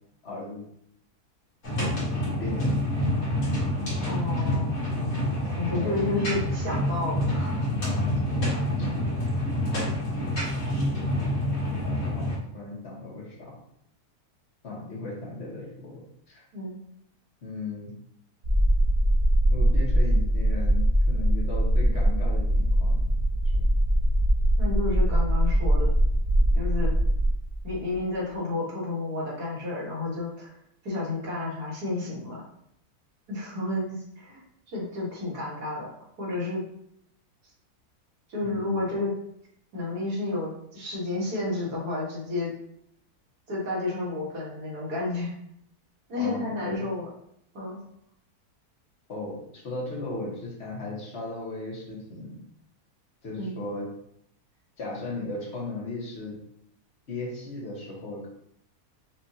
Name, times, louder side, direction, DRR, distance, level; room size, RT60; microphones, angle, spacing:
voice 1, 0.2-0.6 2.1-3.0 5.4-5.9 7.8-8.3 8.8-8.9 11.7-13.5 14.6-16.0 16.3-16.5 17.4-17.9 19.5-23.1 23.5-23.6 38.4-38.9 46.2-46.9 49.1-52.4 53.2-53.9 54.8-56.4 57.1-58.3, left 2 dB, 45° left, -4 dB, 1.5 m, -36 dB
sound 1, 1.6-12.4, left 1 dB, 60° left, 1.9 m, -27 dB
voice 2, 4.1-4.8 5.5-7.7 8.7-9.1 16.5-16.8 24.6-25.9 26.5-26.9 27.6-30.5 30.8-32.4 33.3-34.4 34.7-35.9 36.2-36.6 38.3-39.1 39.7-42.5 43.5-45.3 46.1-47.1 47.5-47.8 53.4-53.6, left 2 dB, 80° right, -5 dB, 2.0 m, -31 dB
sound 2, 18.4-28.0, right 1 dB, 60° right, 1.4 m, -22 dB
6.0 x 2.5 x 2.8 m, 0.72 s
omnidirectional pair, 1.6 m